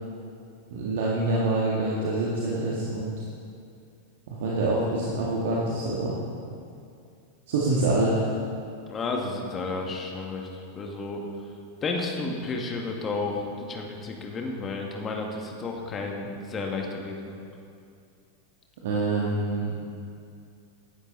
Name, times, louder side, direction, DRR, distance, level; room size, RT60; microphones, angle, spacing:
voice 1, 0.7-3.1 4.3-6.1 7.5-8.3 18.8-19.7, right 2 dB, 55° right, -5 dB, 1.9 m, -26 dB
voice 2, 8.9-11.3 11.8-17.4, left 3 dB, 25° left, 1 dB, 2.0 m, -32 dB
17.5 x 11.5 x 4.0 m, 2.5 s
figure-of-eight pair, 90°, 0 cm